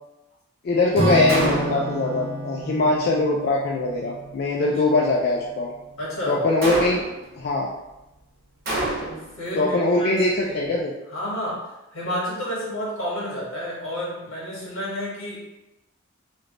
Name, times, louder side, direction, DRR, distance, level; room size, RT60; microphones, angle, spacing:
voice 1, 0.6-5.7 6.3-7.0 7.4-7.7 9.6-10.9, left 2 dB, 50° left, -3 dB, 0.3 m, -22 dB
Acoustic guitar / Strum, 0.9-5.7, right 1 dB, 30° right, 0.4 m, -30 dB
Gunshot gunfire, 1.3-2.0 6.6-7.3 8.7-9.3, right 1 dB, 45° right, 0.8 m, -27 dB
voice 2, 4.6-4.9 6.0-6.4 9.0-10.7 11.1-11.6 11.9-15.4, equal, 80° left, -6 dB, 1.4 m, -31 dB
3.3 x 2.1 x 3.8 m, 0.95 s
head